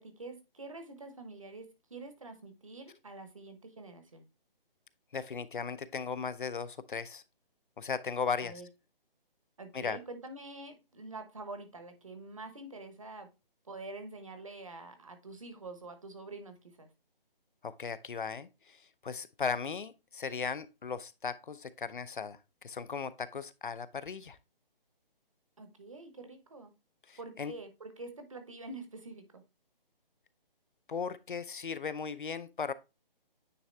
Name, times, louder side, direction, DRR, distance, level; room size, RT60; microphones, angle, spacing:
voice 1, 0.0-4.2 8.4-8.7 9.6-13.3 13.6-16.9 25.6-26.7 27.2-29.4, right 2 dB, 35° right, 0.9 m, -46 dB
voice 2, 5.1-7.2 7.8-8.5 9.7-10.0 17.6-18.8 19.0-24.4 27.1-27.5 30.9-32.7, left 5 dB, 60° left, 0.6 m, -37 dB
9.4 x 3.4 x 3.2 m
hypercardioid pair, 180°, 29 cm